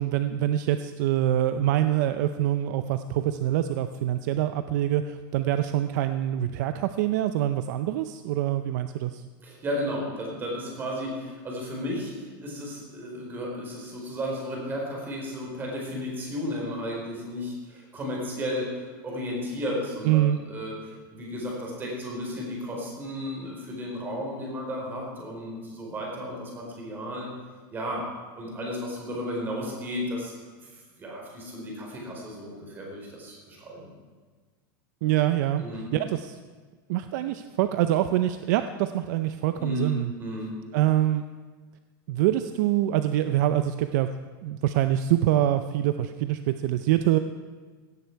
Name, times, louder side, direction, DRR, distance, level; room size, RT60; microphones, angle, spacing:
voice 1, 0.0-9.2 20.0-20.4 35.0-35.6 35.9-36.4 36.9-40.1 40.7-41.2 42.1-44.1 44.4-47.2, right 12 dB, 55° right, 10 dB, 0.6 m, -25 dB
voice 2, 9.4-27.3 27.7-28.0 28.3-30.3 30.7-33.9 35.6-35.8 39.6-39.9 40.2-40.5, equal, 20° right, -1 dB, 4.2 m, -34 dB
17.0 x 14.0 x 4.6 m, 1.5 s
supercardioid pair, 170°, 11 cm